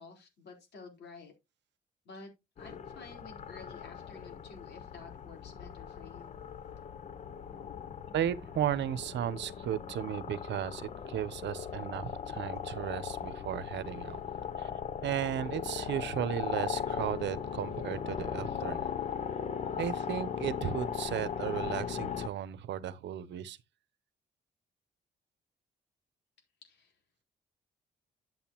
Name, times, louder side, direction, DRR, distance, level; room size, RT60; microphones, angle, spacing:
voice 1, 0.0-1.3 2.0-2.3 2.6-6.4 26.6-27.0, left 4 dB, 70° left, 4.0 m, -51 dB
sound 1, 2.6-22.3, left 7 dB, 40° left, 0.7 m, -38 dB
voice 2, 8.1-14.2 14.6-14.7 15.0-18.9 19.8-23.6, right 10 dB, 80° right, 0.8 m, -35 dB
10.5 x 7.7 x 3.0 m
wide cardioid pair, 170°, 18 cm